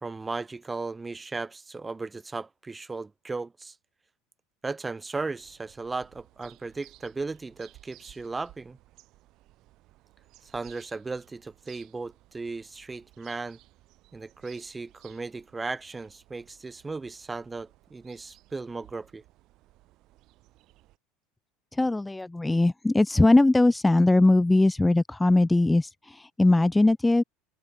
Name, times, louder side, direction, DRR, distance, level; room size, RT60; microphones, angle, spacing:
voice 1, 0.0-3.7 4.6-8.8 10.4-13.6 14.1-19.2, right 3 dB, 15° right, 2.1 m, -36 dB
sound 1, 5.1-21.0, right 17 dB, 55° right, 7.9 m, -58 dB
voice 2, 21.7-27.2, left 2 dB, 10° left, 0.6 m, -21 dB
hypercardioid pair, 70°, 0 cm